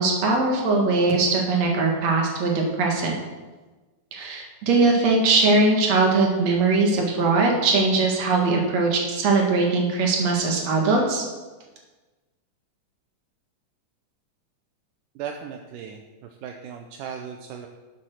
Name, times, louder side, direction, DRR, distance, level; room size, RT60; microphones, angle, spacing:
voice 1, 0.0-3.1 4.1-11.2, right 3 dB, 55° right, 1 dB, 2.8 m, -21 dB
voice 2, 15.2-16.0 16.4-17.7, right 7 dB, 80° right, 4 dB, 2.2 m, -36 dB
10.5 x 7.4 x 6.3 m, 1.2 s
omnidirectional pair, 3.9 m